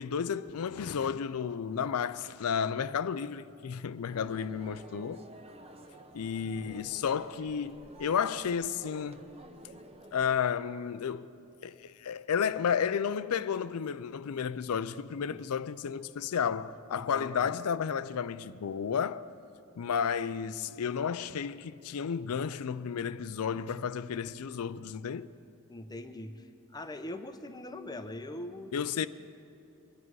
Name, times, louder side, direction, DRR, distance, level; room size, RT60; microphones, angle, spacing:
voice 1, 0.0-5.2 6.1-9.2 10.1-11.3 11.6-19.3 19.8-25.3 28.7-29.1, left 7 dB, 75° left, 0.4 m, -32 dB
sound 1, 4.1-10.4, right 1 dB, 25° right, 0.7 m, -51 dB
voice 2, 16.9-17.6 25.7-26.5 26.7-29.1, left 1 dB, 20° left, 0.7 m, -42 dB
23.0 x 11.0 x 4.7 m
head